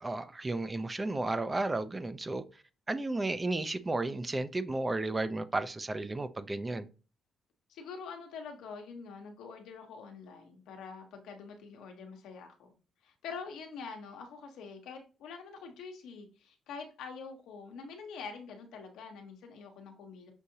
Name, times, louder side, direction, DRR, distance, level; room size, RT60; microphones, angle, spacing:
voice 1, 0.0-2.4 2.9-6.9, right 2 dB, 20° right, 0.4 m, -33 dB
voice 2, 7.7-12.7 13.0-20.3, left 5 dB, 85° left, 1.0 m, -45 dB
6.2 x 2.7 x 2.7 m
cardioid pair, 90°, 0 cm